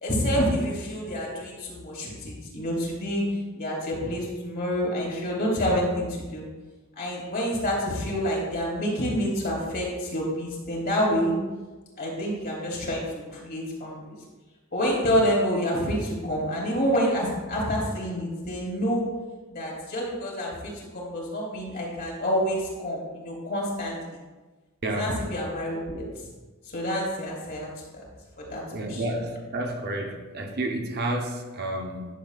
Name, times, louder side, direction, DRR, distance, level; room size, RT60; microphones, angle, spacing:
voice 1, 0.0-3.2 3.5-6.5 7.0-11.4 12.0-13.0 13.3-14.2 14.7-19.1 19.5-24.2 24.9-26.3 26.7-28.0 28.4-29.0, equal, 50° left, -3 dB, 2.7 m, -28 dB
voice 2, 24.8-25.2 28.7-32.1, right 1 dB, 50° right, 2 dB, 0.9 m, -30 dB
11.0 x 6.9 x 2.4 m, 1.2 s
head